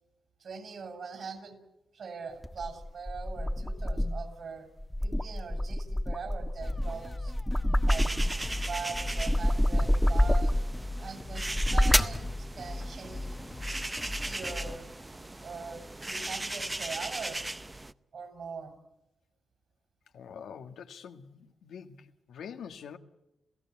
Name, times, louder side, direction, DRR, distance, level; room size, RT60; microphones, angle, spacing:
voice 1, 0.4-1.6 1.9-4.7 5.0-7.3 7.8-10.6 11.0-13.4 14.0-14.9 15.4-17.4 18.1-18.7, right 5 dB, 60° right, 7.1 m, -42 dB
sound 1, 2.4-4.3 4.8-8.5 8.9-10.8 11.4-12.2, equal, 5° left, 1.5 m, -27 dB
sound 2, 6.6-14.8, left 2 dB, 20° left, 1.4 m, -40 dB
sound 3, 7.9-17.9, right 2 dB, 15° right, 0.8 m, -39 dB
voice 2, 20.1-23.0, left 7 dB, 85° left, 1.7 m, -45 dB
27.5 x 16.5 x 8.6 m
cardioid pair, 90°, 0 cm